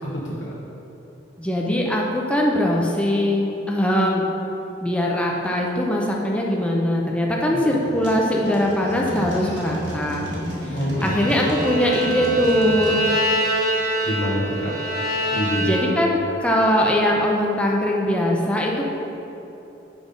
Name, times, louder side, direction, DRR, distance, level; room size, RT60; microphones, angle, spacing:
voice 1, 0.1-0.5 7.5-7.8 10.7-11.3 14.0-14.8 15.3-15.7, equal, 70° left, -6 dB, 1.2 m, -26 dB
voice 2, 1.4-4.3 4.8-10.3 11.0-13.1 15.6-18.8, left 1 dB, 5° left, -2 dB, 0.6 m, -21 dB
sound 1, 7.8-13.0, equal, 60° right, 1.7 m, -32 dB
Bowed string instrument, 11.0-16.1, right 1 dB, 20° right, 0.9 m, -25 dB
6.2 x 5.2 x 5.3 m, 2.9 s
head